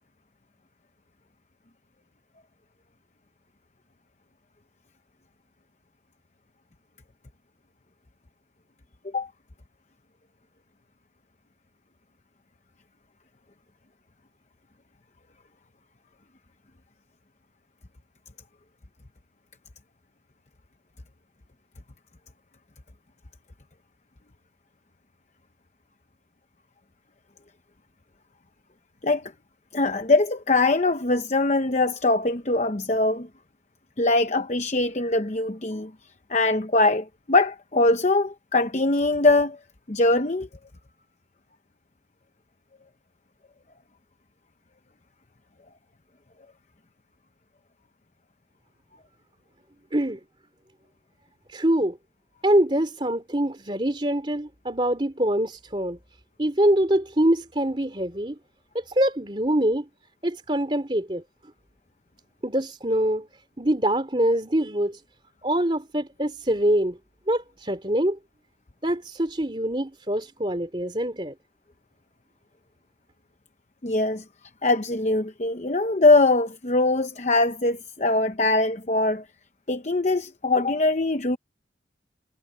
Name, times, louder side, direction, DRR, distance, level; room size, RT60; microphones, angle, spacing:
voice 1, 29.7-33.3 34.0-35.9 36.3-39.6 39.9-40.5 73.8-74.2 74.6-79.2 79.7-81.4, left 2 dB, 40° left, 0.8 m, -22 dB
voice 2, 51.5-52.0 52.4-56.0 56.4-58.4 58.7-59.9 60.2-61.2 62.4-63.3 63.6-65.0 65.4-67.0 67.3-68.2 68.8-71.3, right 1 dB, 25° right, 3.1 m, -24 dB
head